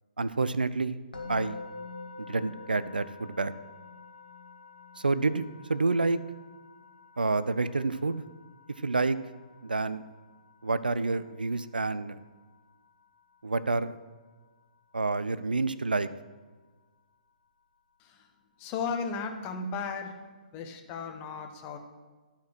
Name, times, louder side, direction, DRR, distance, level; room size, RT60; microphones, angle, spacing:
voice 1, 0.2-1.0 1.3-1.6 2.3-3.5 5.0-5.4 5.7-6.2 7.2-8.2 8.8-9.2 9.6-10.0 10.6-12.2 13.4-13.9 14.9-16.1, right 3 dB, 80° right, 15 dB, 0.4 m, -28 dB
Musical instrument, 1.1-12.2, left 4 dB, 85° left, 1.4 m, -47 dB
voice 2, 18.6-20.2 20.5-21.8, left 5 dB, 30° left, 5 dB, 1.0 m, -35 dB
11.5 x 4.3 x 6.1 m, 1.4 s
figure-of-eight pair, 125°, 5 cm